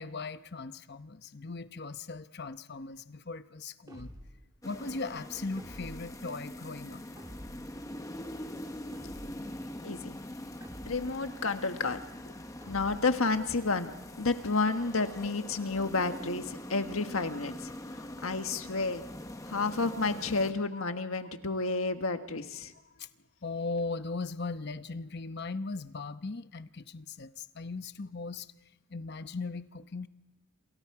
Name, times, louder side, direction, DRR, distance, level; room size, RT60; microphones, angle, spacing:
voice 1, 0.0-4.1 4.6-7.0 18.0-18.1 20.7-20.8 23.0-23.1 23.4-28.5 28.9-30.1, left 3 dB, 50° left, 11 dB, 0.9 m, -38 dB
sound 1, 3.9-4.5 5.6-6.2 7.2-7.8 8.9-9.6 10.6-11.3 12.6-13.3, equal, 15° right, 2.0 m, -49 dB
sound 2, 4.6-20.5, left 1 dB, 15° left, 1.0 m, -43 dB
voice 2, 9.8-10.2 10.9-12.0 12.3-12.4 12.7-13.9 14.2-19.0 19.5-22.7, left 3 dB, 75° left, 7 dB, 1.5 m, -31 dB
28.0 x 27.5 x 4.8 m, 1.1 s
head